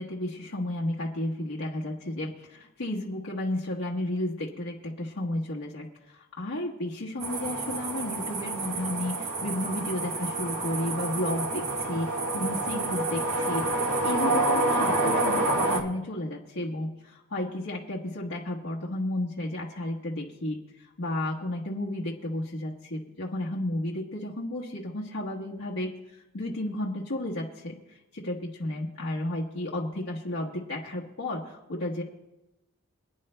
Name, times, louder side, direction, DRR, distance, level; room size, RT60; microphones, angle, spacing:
voice 1, 0.0-13.6 14.0-32.0, left 1 dB, 80° left, -3 dB, 1.2 m, -33 dB
sound 1, 7.2-15.8, right 2 dB, 80° right, 1.6 m, -28 dB
27.5 x 9.8 x 2.2 m, 0.96 s
head